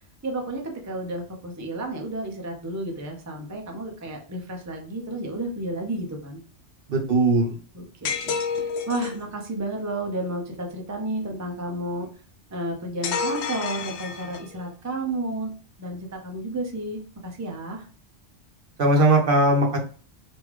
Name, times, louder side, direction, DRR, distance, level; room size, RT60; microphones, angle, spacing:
voice 1, 0.2-6.4 7.7-12.1 12.5-15.5 15.8-17.9, right 1 dB, 20° right, 1 dB, 0.5 m, -32 dB
voice 2, 6.9-7.5 18.8-19.8, right 2 dB, 55° right, 2 dB, 0.9 m, -19 dB
sound 1, 8.0-9.2 13.0-14.6, left 5 dB, 80° left, 0.9 m, -29 dB
3.5 x 2.5 x 3.2 m, 0.40 s
omnidirectional pair, 1.1 m